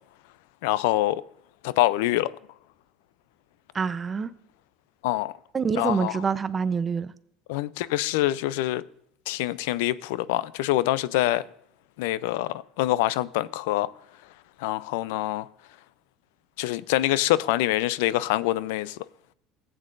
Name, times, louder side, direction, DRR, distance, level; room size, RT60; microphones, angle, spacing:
voice 1, 0.6-1.2 1.6-2.3 5.0-5.3 5.8-6.2 7.5-8.8 9.3-11.4 12.0-13.9 14.6-15.5 16.6-19.0, left 15 dB, 85° left, 0.4 m, -25 dB
voice 2, 3.7-4.3 5.5-7.1, right 5 dB, 25° right, 0.5 m, -26 dB
14.5 x 8.6 x 2.5 m
supercardioid pair, 125°, 0 cm